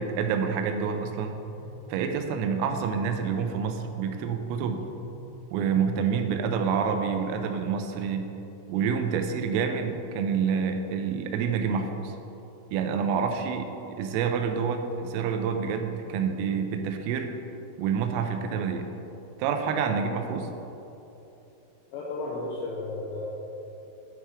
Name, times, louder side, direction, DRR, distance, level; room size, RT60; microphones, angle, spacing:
voice 1, 0.0-1.4 1.9-4.8 5.5-8.3 8.7-12.2 12.7-17.3 17.8-18.9 19.4-20.5, right 6 dB, 85° right, 6 dB, 3.2 m, -28 dB
sound 1, 1.4-6.6, right 1 dB, 70° left, 3.9 m, -45 dB
voice 2, 21.9-23.3, left 2 dB, 85° left, -3 dB, 2.5 m, -33 dB
9.9 x 4.3 x 4.7 m, 3.0 s
omnidirectional pair, 5.9 m